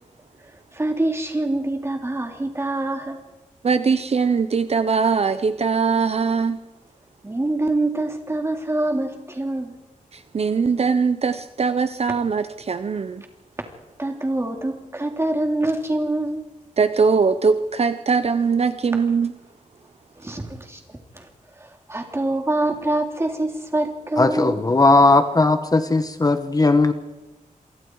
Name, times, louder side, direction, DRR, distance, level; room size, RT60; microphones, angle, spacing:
voice 1, 0.4-3.2 7.2-9.8 14.0-16.4 20.2-21.3 21.6-24.6, right 2 dB, 20° right, 3 dB, 3.4 m, -25 dB
voice 2, 3.6-6.6 10.1-13.2 16.8-19.3, right 5 dB, 50° right, 10 dB, 0.8 m, -21 dB
voice 3, 24.2-26.9, left 3 dB, 30° left, 9 dB, 1.2 m, -17 dB
27.5 x 23.5 x 4.8 m, 1.1 s
wide cardioid pair, 135°, 14 cm